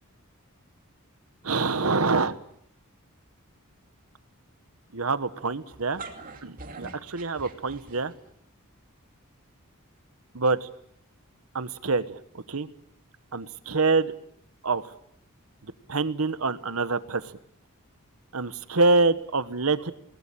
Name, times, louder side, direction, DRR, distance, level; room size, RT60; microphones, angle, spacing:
voice 1, 1.4-2.4 4.9-6.0 6.4-8.1 10.3-10.7 11.5-12.7 13.3-14.1 14.6-14.8 15.9-17.3 18.3-19.9, right 3 dB, 80° right, 13 dB, 1.2 m, -26 dB
sound 1, 5.7-8.3, right 3 dB, 40° right, 2.7 m, -43 dB
20.5 x 19.5 x 8.6 m, 0.72 s
head